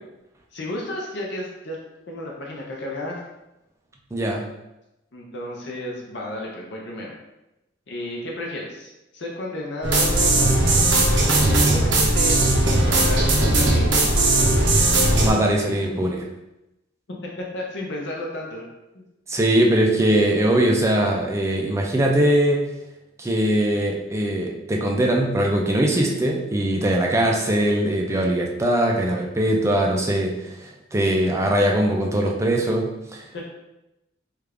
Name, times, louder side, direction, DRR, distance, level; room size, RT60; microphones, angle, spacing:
voice 1, 0.5-1.8 2.1-3.2 5.1-7.1 7.9-10.4 10.7-12.4 12.7-14.1 17.5-18.6 18.9-19.0 33.3-33.5, left 1 dB, 65° left, -2 dB, 0.6 m, -33 dB
voice 2, 4.1-4.5 15.1-16.2 19.3-22.6 23.2-33.2, right 1 dB, 15° right, 0 dB, 0.4 m, -21 dB
sound 1, 9.8-15.3, right 2 dB, 65° right, 0.6 m, -18 dB
3.3 x 2.4 x 3.4 m, 0.93 s
head